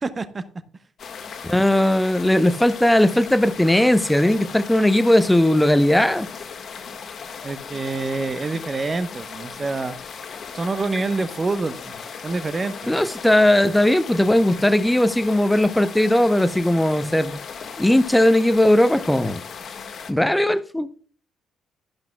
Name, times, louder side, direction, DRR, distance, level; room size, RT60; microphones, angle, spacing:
voice 1, 0.0-0.4 7.4-10.0 10.5-11.9 12.2-12.9, right 3 dB, 30° right, 1.0 m, -26 dB
sound 1, 1.0-20.1, left 6 dB, 45° left, 1.6 m, -37 dB
voice 2, 1.4-6.3 12.9-17.4 17.8-19.4 20.1-20.9, left 1 dB, 5° left, 0.9 m, -18 dB
12.0 x 11.5 x 2.3 m
figure-of-eight pair, 40°, 0 cm